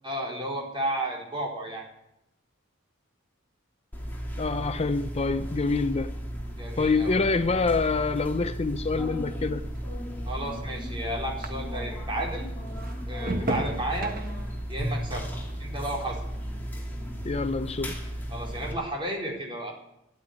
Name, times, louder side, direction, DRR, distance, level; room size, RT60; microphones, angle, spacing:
voice 1, 0.0-1.8 6.6-7.1 10.3-12.5 13.1-14.1 14.7-15.3 15.6-16.2 18.3-19.7, right 1 dB, 25° right, 4.4 m, -32 dB
sound 1, 3.9-18.7, equal, 10° left, 2.8 m, -35 dB
voice 2, 4.4-6.1 6.8-9.7 17.2-18.0, left 4 dB, 30° left, 0.5 m, -26 dB
sound 2, 5.3-12.1 12.4-17.0 17.3-17.8, right 1 dB, 45° right, 1.4 m, -39 dB
12.5 x 11.0 x 9.9 m
head